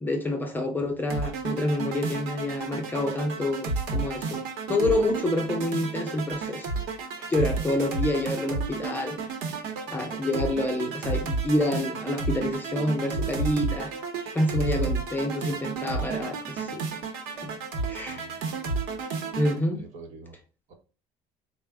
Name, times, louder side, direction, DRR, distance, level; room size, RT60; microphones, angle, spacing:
voice 1, 0.0-4.4 4.7-6.7 7.2-9.2 9.9-14.0 14.3-16.8 17.4-17.6 17.9-18.3 19.3-19.8, left 1 dB, 15° left, 0.6 m, -28 dB
sound 1, 1.1-19.6, right 4 dB, 90° right, 0.8 m, -32 dB
voice 2, 17.9-18.4 19.7-20.4 20.7-20.8, right 3 dB, 55° right, 1.1 m, -46 dB
4.2 x 2.1 x 3.4 m
cardioid pair, 150°, 14 cm